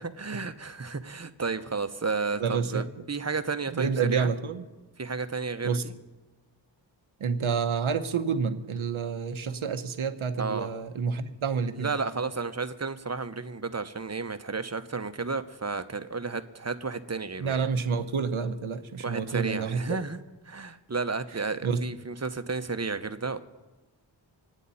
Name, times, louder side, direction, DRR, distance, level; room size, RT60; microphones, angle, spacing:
voice 1, 0.0-4.3 5.0-5.9 10.4-10.7 11.8-17.7 19.0-20.2 20.5-23.4, right 4 dB, 35° right, 10 dB, 1.0 m, -32 dB
voice 2, 2.4-2.8 3.7-4.7 5.6-5.8 7.2-12.0 17.4-20.0 21.6-21.8, right 5 dB, 85° right, 9 dB, 1.0 m, -29 dB
26.5 x 9.1 x 4.2 m, 1.2 s
cardioid pair, 40°, 47 cm